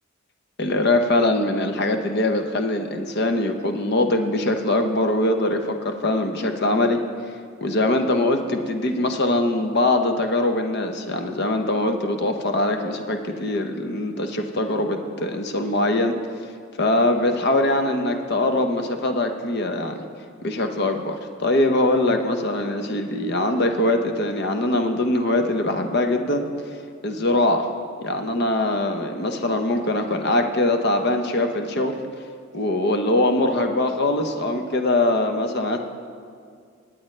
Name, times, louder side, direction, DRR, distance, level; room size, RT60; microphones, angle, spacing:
voice 1, 0.6-7.0 7.6-16.1 16.8-20.0 20.4-26.4 27.0-27.7 28.0-31.9 32.5-35.8, left 2 dB, 55° left, 6 dB, 0.8 m, -22 dB
19.5 x 8.7 x 3.3 m, 2.2 s
head